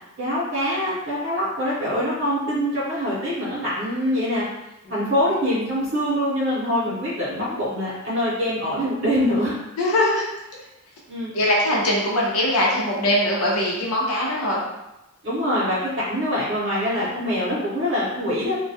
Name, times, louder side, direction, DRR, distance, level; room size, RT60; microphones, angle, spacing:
voice 1, 0.2-4.4 4.9-9.5 9.9-10.0 11.1-11.3 15.2-18.6, equal, 55° right, -10 dB, 0.7 m, -24 dB
voice 2, 9.8-10.2 11.3-14.6, left 1 dB, 85° left, -4 dB, 0.7 m, -21 dB
2.2 x 2.2 x 2.7 m, 0.95 s
head